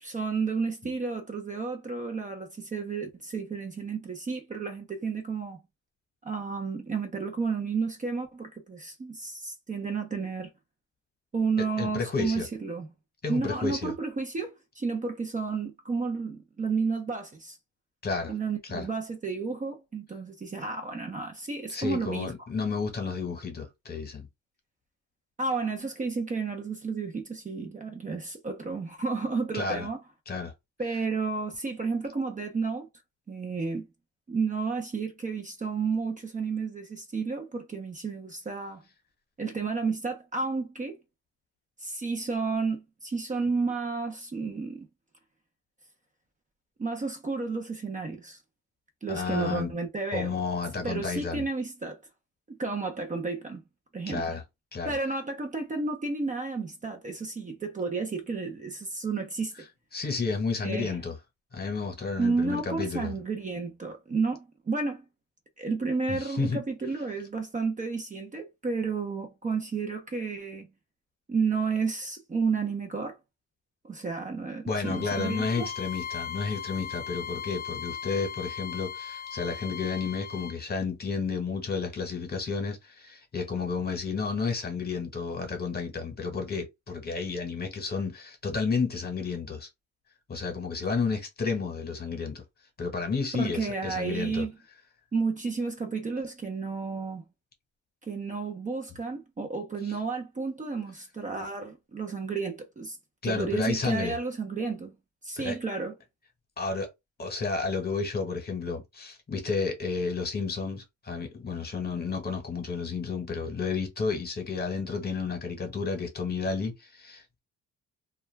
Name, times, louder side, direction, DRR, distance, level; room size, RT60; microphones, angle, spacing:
voice 1, 0.0-5.6 6.2-10.5 11.3-12.9 13.3-17.6 18.3-22.3 25.4-30.0 30.8-32.9 33.3-33.9 34.3-38.8 39.4-41.0 41.8-44.9 46.8-48.4 49.0-50.4 50.8-52.0 52.5-53.6 53.9-54.3 54.9-59.5 60.6-61.0 62.2-65.0 65.6-70.7 71.3-73.2 73.8-75.7 93.3-94.5 95.1-97.3 98.1-103.0 103.2-105.0 105.2-106.0, right 4 dB, 25° right, 0.6 m, -31 dB
voice 2, 11.6-12.5 13.2-13.9 18.0-18.3 18.7-18.9 21.7-24.3 29.5-29.9 30.3-30.5 49.1-49.7 50.1-51.4 54.1-54.4 54.7-55.0 59.9-61.2 61.5-63.2 66.1-66.6 74.7-89.7 90.3-92.4 92.8-94.5 103.2-104.2 105.4-105.6 106.6-106.9 107.2-117.4, left 4 dB, 30° left, 1.0 m, -31 dB
Bowed string instrument, 74.8-80.6, left 7 dB, 70° left, 0.6 m, -38 dB
2.3 x 2.1 x 3.2 m
cardioid pair, 90°, 30 cm